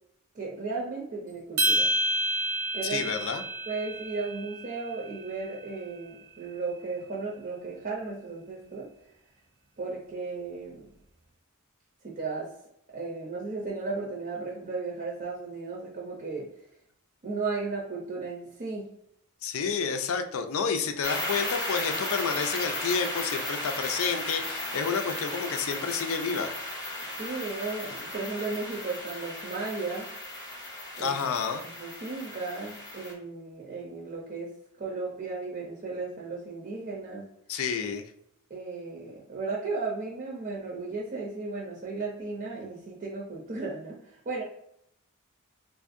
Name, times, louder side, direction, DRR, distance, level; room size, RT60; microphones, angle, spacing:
voice 1, 0.3-1.9 2.7-3.1 3.7-8.9 9.8-10.9 12.0-12.6 12.9-16.5 17.2-18.9 27.1-30.1 31.0-31.2 31.8-34.5 34.8-37.3 38.5-44.4, right 3 dB, 40° right, -3 dB, 0.6 m, -35 dB
sound 1, 1.6-6.0, right 1 dB, 80° right, 0.9 m, -30 dB
voice 2, 2.8-3.4 19.4-26.5 31.0-31.7 37.5-38.0, left 6 dB, 65° left, 7 dB, 0.4 m, -30 dB
sound 2, 21.0-33.1, left 1 dB, 15° left, 0.8 m, -35 dB
3.5 x 2.5 x 2.5 m, 0.74 s
head